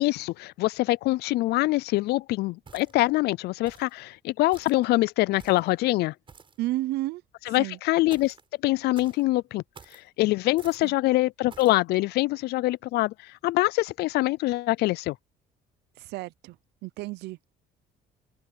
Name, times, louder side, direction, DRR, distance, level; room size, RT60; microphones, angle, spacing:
voice 1, 0.0-6.1 7.5-8.3 8.6-9.6 9.9-15.2, left 19 dB, 75° left, 0.4 m, -24 dB
sound 1, 2.7-3.1 3.7-4.0 4.5-4.8 5.4-5.7 6.3-6.6 8.1-8.5 8.9-9.2 9.7-10.0 10.6-10.9 11.5-11.8, right 5 dB, 30° right, 5.9 m, -50 dB
voice 2, 6.6-7.8 10.8-10.9 16.0-16.6 16.8-17.4, right 17 dB, 80° right, 0.6 m, -32 dB
cardioid pair, 110°, 17 cm